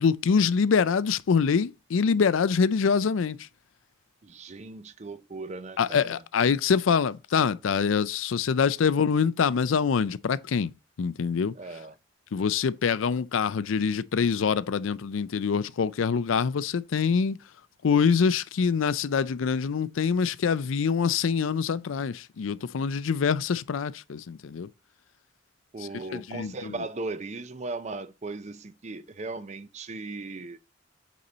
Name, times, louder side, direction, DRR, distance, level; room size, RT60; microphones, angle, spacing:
voice 1, 0.0-3.5 5.8-10.7 11.0-11.5 12.3-17.4 17.8-24.7 25.8-26.7, left 6 dB, 80° left, 0.4 m, -25 dB
voice 2, 4.2-6.2 11.6-11.9 25.7-30.6, right 3 dB, 35° right, 0.5 m, -37 dB
8.4 x 4.2 x 3.9 m
head